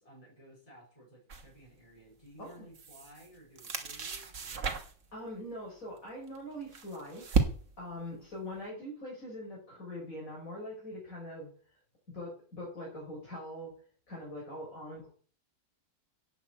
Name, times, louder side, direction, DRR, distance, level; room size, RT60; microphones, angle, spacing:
voice 1, 0.0-4.6, equal, 25° left, -3 dB, 5.6 m, -56 dB
sound 1, 1.3-1.5 2.5-3.3 3.6-5.1 6.3-7.9, right 4 dB, 60° right, 1.8 m, -33 dB
voice 2, 5.1-7.3 7.8-11.5 12.1-13.7 14.1-15.1, left 1 dB, 70° left, -3 dB, 5.4 m, -42 dB
10.5 x 8.1 x 7.9 m, 0.43 s
omnidirectional pair, 1.5 m